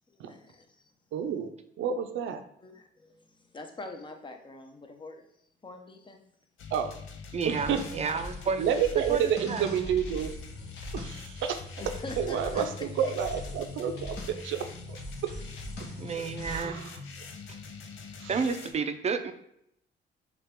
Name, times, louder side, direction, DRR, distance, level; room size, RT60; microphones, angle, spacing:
voice 1, 0.1-0.9 2.3-2.4 2.6-5.3 5.6-6.2 11.8-13.1 16.1-16.7, left 2 dB, 25° left, 4 dB, 0.8 m, -45 dB
voice 2, 1.1-1.5 1.8-2.4 6.7-6.9 7.4-7.8 8.6-10.3 10.9-11.6 12.2-14.2 14.4-15.0 15.2-15.3 16.5-16.9 18.2-18.3, right 8 dB, 80° right, 7 dB, 0.6 m, -29 dB
sound 1, 6.6-18.7, left 4 dB, 80° left, 0.7 m, -44 dB
voice 3, 7.3-8.6 9.1-9.7 16.0-16.8 17.5-17.6 18.3-19.3, right 5 dB, 35° right, 8 dB, 0.5 m, -31 dB
sound 2, 7.5-16.6, left 1 dB, 60° left, 1.3 m, -42 dB
5.8 x 2.4 x 3.7 m, 0.74 s
cardioid pair, 90°, 20 cm